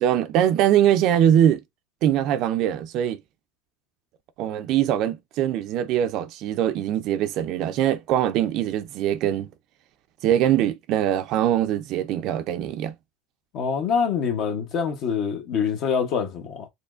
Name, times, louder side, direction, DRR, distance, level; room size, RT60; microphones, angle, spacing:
voice 1, 0.0-1.6 2.0-3.2 4.4-9.5 10.2-12.9, right 10 dB, 50° right, 0.4 m, -22 dB
voice 2, 13.5-16.7, left 6 dB, 50° left, 0.8 m, -25 dB
4.2 x 3.0 x 2.4 m
supercardioid pair, 135°, 0 cm